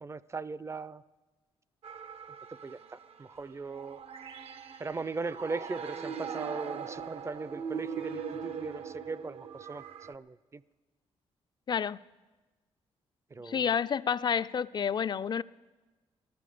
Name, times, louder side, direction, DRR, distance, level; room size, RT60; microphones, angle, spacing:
voice 1, 0.0-1.0 2.6-4.0 4.8-10.6 13.3-13.6, right 4 dB, 25° right, 0.4 m, -39 dB
sound 1, 1.8-10.1, right 6 dB, 60° right, 0.7 m, -41 dB
voice 2, 11.7-12.0 13.4-15.4, left 7 dB, 40° left, 0.4 m, -29 dB
18.5 x 13.5 x 5.0 m
cardioid pair, 85°, 11 cm